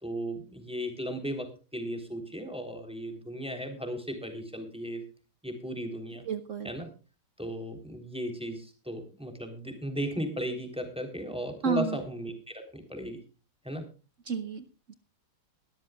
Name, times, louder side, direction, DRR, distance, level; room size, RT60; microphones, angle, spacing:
voice 1, 0.0-5.0 5.4-6.2 6.6-6.9 7.4-13.2 13.6-13.9, equal, 5° right, 5 dB, 3.4 m, -36 dB
voice 2, 6.3-6.7 11.6-12.0 14.3-14.9, right 6 dB, 50° right, 9 dB, 1.0 m, -31 dB
21.5 x 13.0 x 2.4 m, 0.34 s
omnidirectional pair, 2.2 m